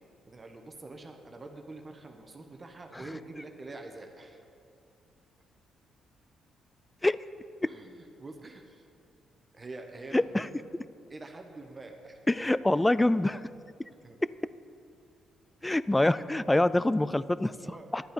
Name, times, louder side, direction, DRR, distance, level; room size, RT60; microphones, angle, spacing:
voice 1, 0.3-4.4 7.7-8.8 9.5-10.8 11.1-12.5 14.0-14.2 17.6-17.9, right 2 dB, 30° right, 4 dB, 1.1 m, -45 dB
voice 2, 10.1-10.5 12.3-13.4 15.6-17.5 17.9-18.0, left 1 dB, 10° left, 17 dB, 0.3 m, -25 dB
11.5 x 9.1 x 5.1 m, 2.4 s
cardioid pair, 90°, 0 cm